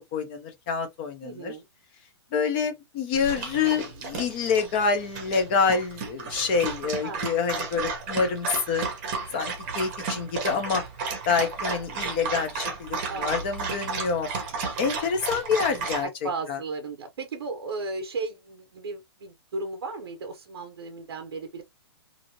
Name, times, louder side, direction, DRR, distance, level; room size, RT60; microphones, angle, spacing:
voice 1, 0.1-1.6 2.3-8.9 9.3-10.8 11.3-14.3 14.8-16.1 16.5-16.6, left 5 dB, 25° left, 0.7 m, -27 dB
voice 2, 1.2-1.7 7.0-7.3 13.0-13.4 16.0-21.6, right 3 dB, 65° right, 0.6 m, -35 dB
Dog, 3.1-16.0, right 4 dB, 25° right, 0.9 m, -33 dB
2.8 x 2.7 x 2.8 m
hypercardioid pair, 175°, 14 cm